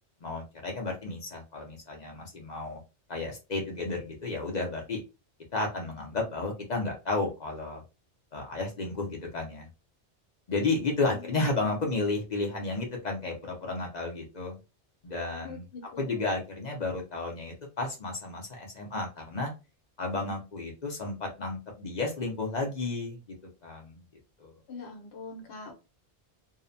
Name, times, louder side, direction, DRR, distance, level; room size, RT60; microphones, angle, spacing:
voice 1, 0.2-2.8 3.1-5.0 5.5-7.8 8.3-9.7 10.5-14.6 15.0-15.6 16.0-19.5 20.0-23.4 23.6-24.0 24.4-24.5, left 3 dB, 50° left, 0.6 m, -32 dB
voice 2, 11.0-11.9 15.4-16.3 24.7-25.8, left 3 dB, 70° left, 1.0 m, -44 dB
2.7 x 2.1 x 2.5 m
omnidirectional pair, 1.2 m